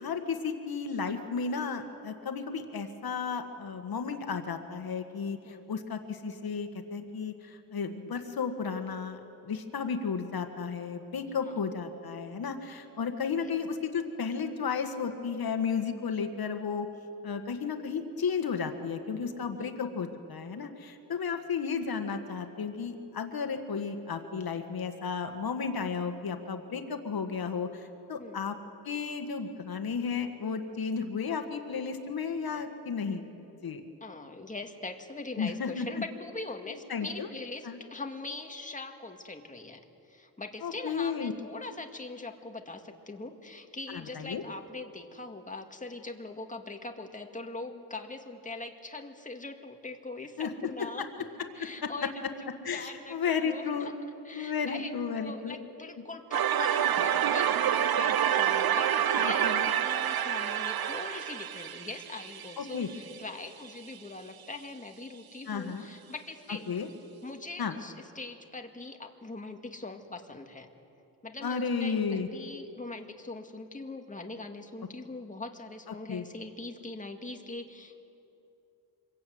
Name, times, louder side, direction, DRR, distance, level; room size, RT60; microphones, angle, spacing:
voice 1, 0.0-16.9 17.2-28.6 28.9-33.3 33.6-33.8 35.4-35.9 36.7-37.3 37.7-37.8 40.6-41.3 43.9-44.4 50.4-50.5 51.0-51.1 51.8-51.9 52.6-53.9 54.3-55.6 59.2-59.7 62.6-62.9 65.5-65.9 66.7-66.9 67.6-67.7 71.4-72.3 75.9-76.2, left 5 dB, 65° left, 7 dB, 1.8 m, -33 dB
voice 2, 19.5-20.0 28.2-28.4 34.0-39.8 40.1-51.1 51.5-53.2 53.4-53.9 54.2-66.7 67.2-70.7 71.2-78.0, left 3 dB, 20° left, 4 dB, 2.2 m, -42 dB
sound 1, 56.3-63.2, right 10 dB, 65° right, 0.9 m, -28 dB
26.0 x 22.0 x 9.5 m, 2.8 s
cardioid pair, 95°, 39 cm